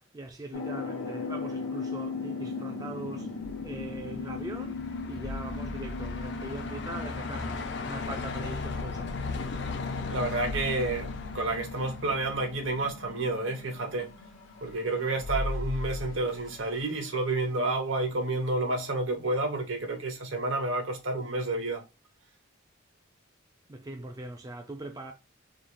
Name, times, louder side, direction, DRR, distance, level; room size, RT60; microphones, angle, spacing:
voice 1, 0.0-9.2 23.7-25.1, right 2 dB, 20° right, 0.3 m, -41 dB
sound 1, 0.5-16.6, left 4 dB, 75° left, 0.8 m, -39 dB
sound 2, 3.4-4.3 5.1-9.1 9.6-9.7 9.9-16.8, left 2 dB, 85° right, 0.8 m, -41 dB
Truck, 3.6-13.0, left 4 dB, 55° left, 0.5 m, -38 dB
voice 2, 10.1-14.1 14.6-21.8, right 2 dB, 70° right, 1.0 m, -30 dB
3.8 x 2.3 x 3.2 m
head